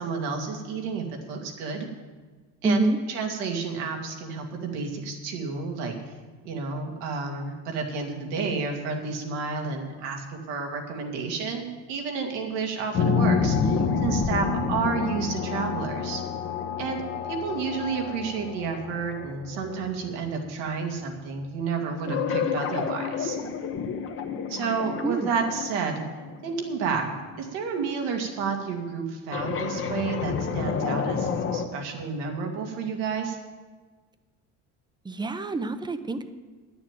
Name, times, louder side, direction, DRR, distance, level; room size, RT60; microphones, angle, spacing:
voice 1, 0.0-1.9 2.6-2.8 3.1-5.9 6.4-16.2 16.8-17.0 17.3-23.4 24.5-26.0 26.4-27.1 27.4-33.4, right 5 dB, 90° right, 2 dB, 2.1 m, -30 dB
voice 2, 2.6-3.0 25.0-25.3 35.1-36.2, right 2 dB, 15° right, 10 dB, 0.7 m, -26 dB
sound 1, 12.9-20.4 22.1-27.6 29.3-31.6, left 5 dB, 40° left, 1.0 m, -29 dB
10.5 x 7.0 x 9.0 m, 1.4 s
cardioid pair, 115°, 34 cm